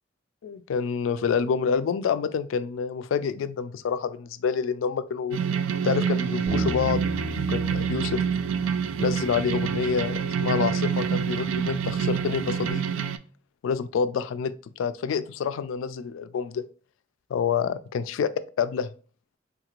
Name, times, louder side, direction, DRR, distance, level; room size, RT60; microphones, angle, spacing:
voice 1, 0.4-5.4 5.8-8.2 9.0-12.8 13.6-16.6 17.3-18.3 18.6-18.9, left 6 dB, 85° left, 13 dB, 0.3 m, -27 dB
sound 1, 5.3-13.2, right 7 dB, 90° right, 0.3 m, -27 dB
Bass guitar, 6.5-12.7, right 1 dB, 35° right, 0.6 m, -38 dB
3.5 x 2.4 x 3.0 m, 0.40 s
head